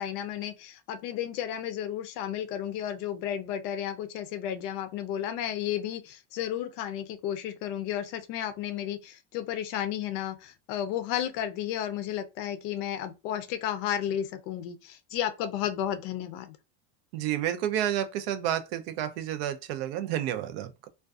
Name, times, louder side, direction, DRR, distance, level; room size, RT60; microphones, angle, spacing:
voice 1, 0.0-16.6, left 10 dB, 50° left, 0.4 m, -33 dB
voice 2, 17.1-20.9, right 11 dB, 85° right, 0.5 m, -30 dB
2.5 x 2.2 x 2.3 m
cardioid pair, 170°, 29 cm